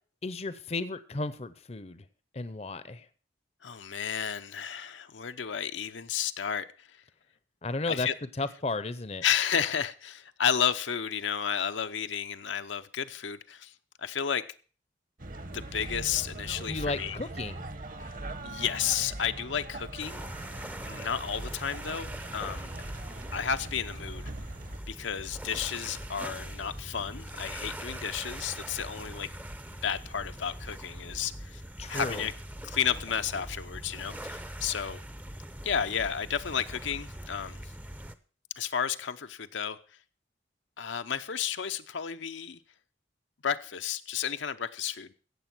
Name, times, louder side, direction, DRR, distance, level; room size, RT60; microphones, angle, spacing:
voice 1, 0.2-2.0 2.3-3.1 7.6-8.1 8.4-9.2 16.7-17.7 31.8-32.3, left 3 dB, 35° left, 0.7 m, -34 dB
voice 2, 3.6-6.9 7.9-8.1 9.2-13.7 14.0-14.4 15.5-17.2 18.0-18.1 18.4-20.2 20.8-22.7 23.3-24.3 24.9-29.3 29.7-31.6 31.9-32.3 32.6-35.0 35.6-37.7 38.6-39.8 40.8-42.6 43.4-45.1, left 8 dB, 85° left, 0.8 m, -32 dB
sound 1, 15.2-24.8, right 2 dB, 45° right, 1.1 m, -41 dB
sound 2, 20.0-38.2, right 1 dB, 10° right, 0.6 m, -42 dB
16.5 x 7.4 x 6.0 m
head